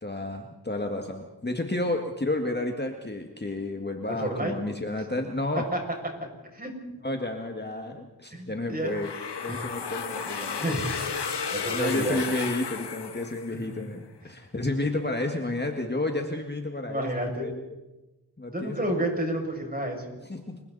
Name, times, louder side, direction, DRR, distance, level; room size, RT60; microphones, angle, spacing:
voice 1, 0.0-5.7 7.0-9.1 9.4-10.6 11.7-17.6 18.4-18.9 20.2-20.6, left 2 dB, 25° left, 3 dB, 1.9 m, -31 dB
voice 2, 4.2-4.5 6.5-6.7 8.3-8.9 9.5-9.7 10.6-10.9 11.5-12.2 13.5-13.6 16.8-17.5 18.5-20.0, right 1 dB, 20° right, 1 dB, 7.0 m, -30 dB
sound 1, 8.9-13.8, left 6 dB, 85° left, 1.5 m, -33 dB
30.0 x 23.5 x 4.2 m, 1.0 s
wide cardioid pair, 70°, 40 cm